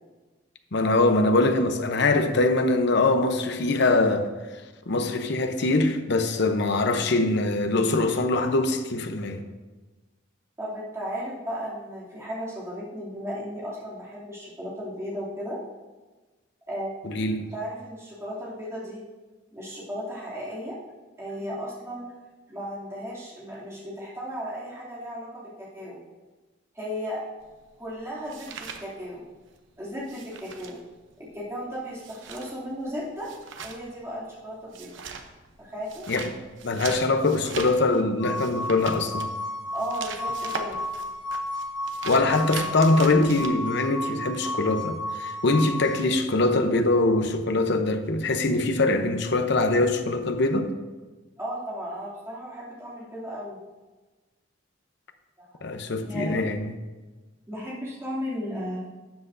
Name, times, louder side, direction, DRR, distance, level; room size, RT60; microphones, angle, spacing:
voice 1, 0.7-4.3 4.9-9.4 17.0-17.5 36.1-36.3 36.6-39.3 42.1-50.7 55.6-56.7, left 2 dB, 65° left, 0.8 m, -23 dB
voice 2, 10.6-15.6 16.7-17.0 17.5-19.0 19.5-20.8 21.2-22.1 22.5-26.0 26.7-27.3 27.8-29.3 29.8-30.8 31.2-33.3 33.6-34.9 35.6-36.1 39.7-40.8 51.4-53.6 55.4-55.6 56.1-56.5 57.5-58.9, equal, 15° right, 2.6 m, -35 dB
sound 1, 27.4-29.6 29.8-43.5, right 5 dB, 70° right, 0.8 m, -40 dB
sound 2, 38.2-46.0, left 1 dB, 25° left, 1.4 m, -33 dB
12.5 x 7.7 x 2.6 m
head